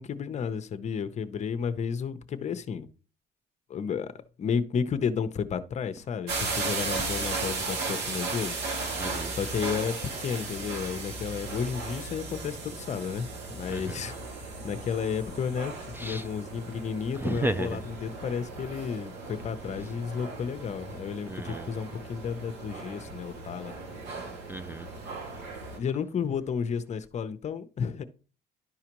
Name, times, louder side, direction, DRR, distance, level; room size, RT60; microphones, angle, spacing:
voice 1, 0.0-2.9 3.7-4.1 4.4-8.6 9.3-23.7 25.8-28.0, left 6 dB, 45° left, 0.7 m, -32 dB
sound 1, 6.3-25.8, right 3 dB, 85° right, 2.1 m, -36 dB
voice 2, 9.0-9.3 13.7-13.8 16.0-16.2 17.2-17.8 21.3-21.7 24.5-24.9, right 2 dB, 10° right, 0.4 m, -33 dB
11.5 x 4.9 x 3.0 m
cardioid pair, 110°, 17 cm